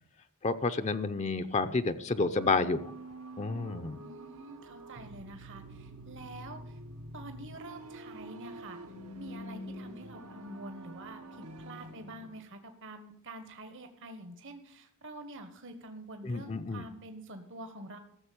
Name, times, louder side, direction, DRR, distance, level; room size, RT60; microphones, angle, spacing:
voice 1, 0.4-2.9 3.4-4.0 16.2-16.8, left 3 dB, 30° left, 10 dB, 0.6 m, -30 dB
sound 1, 1.4-12.4, right 1 dB, 80° right, 1.4 m, -47 dB
voice 2, 4.0-6.8 7.1-8.8 9.1-18.0, right 2 dB, 60° right, 7 dB, 1.4 m, -47 dB
14.5 x 7.2 x 8.6 m, 0.70 s
head